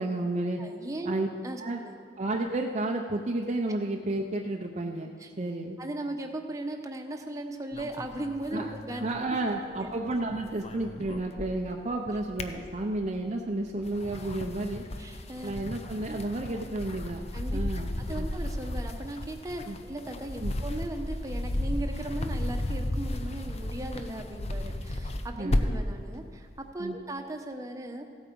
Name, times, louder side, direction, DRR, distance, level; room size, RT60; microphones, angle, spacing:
voice 1, 0.0-0.6 1.1-1.3 1.6-1.8 2.2-5.1 5.4-5.8 8.5-8.7 9.0-14.8 15.4-17.2 17.5-18.2 19.7-19.8 20.4-20.5 25.4-25.6 26.8-27.0, right 2 dB, 40° right, 1 dB, 0.7 m, -31 dB
voice 2, 0.6-1.1 1.4-2.0 5.2-5.3 5.8-9.1 9.7-9.9 15.0-15.5 17.3-26.5 26.7-28.1, right 1 dB, 20° right, 3 dB, 1.0 m, -37 dB
sound 1, 7.7-9.9 10.2-11.8 12.1-13.2 13.7-25.9, left 1 dB, 40° left, 0.7 m, -34 dB
15.5 x 8.5 x 5.3 m, 2.1 s
head